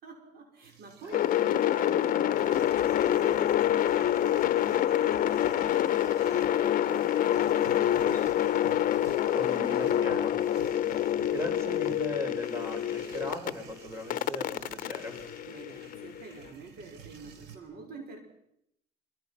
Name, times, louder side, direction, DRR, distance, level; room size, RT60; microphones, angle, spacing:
voice 1, 0.0-8.8 15.5-18.2, right 4 dB, 65° right, 4 dB, 5.6 m, -47 dB
sound 1, 0.6-17.6, right 7 dB, 80° right, 3.7 m, -52 dB
sound 2, 1.1-13.5 14.1-16.2, left 11 dB, 55° left, 0.9 m, -27 dB
voice 2, 9.3-10.3 10.7-10.9 11.2-15.1, equal, 15° right, 5 dB, 6.0 m, -38 dB
26.0 x 24.0 x 6.0 m, 0.79 s
cardioid pair, 110°, 17 cm